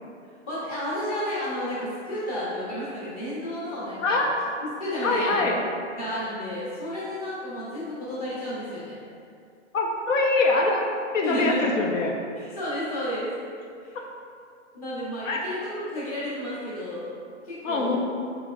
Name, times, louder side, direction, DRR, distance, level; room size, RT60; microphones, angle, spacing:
voice 1, 0.5-4.3 4.6-5.5 6.0-9.0 11.2-11.7 12.4-13.3 13.8-14.0 14.7-17.1 17.4-18.0, equal, 30° left, -9 dB, 0.9 m, -32 dB
voice 2, 5.0-5.6 9.7-10.8 11.1-12.1 15.3-15.4 17.6-18.0, left 3 dB, 90° left, 1 dB, 0.7 m, -23 dB
3.3 x 3.1 x 2.3 m, 2.3 s
hypercardioid pair, 160°, 37 cm